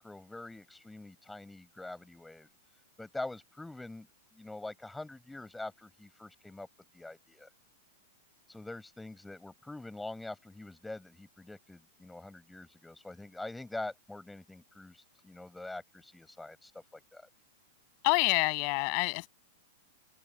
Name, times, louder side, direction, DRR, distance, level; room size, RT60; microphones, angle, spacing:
voice 1, 0.0-2.5 3.0-4.1 4.3-6.7 6.9-7.5 8.5-17.3, left 2 dB, 5° left, 7.9 m, -44 dB
voice 2, 18.0-19.3, left 39 dB, 45° left, 7.7 m, -27 dB
supercardioid pair, 150°, 0 cm